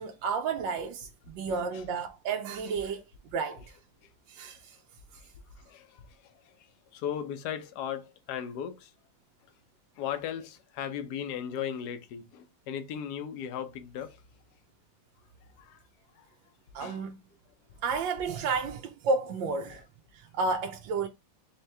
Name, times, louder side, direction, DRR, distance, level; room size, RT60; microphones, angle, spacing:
voice 1, 0.0-3.0 3.3-3.6 4.3-4.8 16.7-17.2 17.8-19.8 20.1-21.1, right 4 dB, 75° right, 1.2 m, -31 dB
voice 2, 5.6-6.5 6.9-8.9 10.0-14.2 15.6-15.8 16.2-16.3 16.8-17.0, left 9 dB, 70° left, 1.1 m, -37 dB
4.4 x 2.9 x 3.2 m
omnidirectional pair, 2.1 m